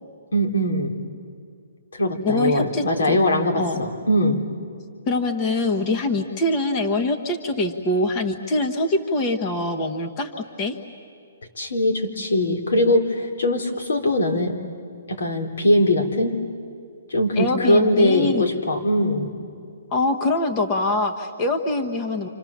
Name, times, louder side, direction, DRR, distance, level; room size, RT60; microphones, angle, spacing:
voice 1, 0.3-0.9 1.9-4.4 11.6-14.6 15.1-16.3 17.1-19.3, left 1 dB, 90° left, 4 dB, 3.9 m, -21 dB
voice 2, 2.2-3.2 3.6-3.8 5.1-10.8 17.4-18.4 19.9-22.3, left 2 dB, 20° left, 4 dB, 1.1 m, -24 dB
30.0 x 27.0 x 7.3 m, 2.3 s
hypercardioid pair, 175°, 0 cm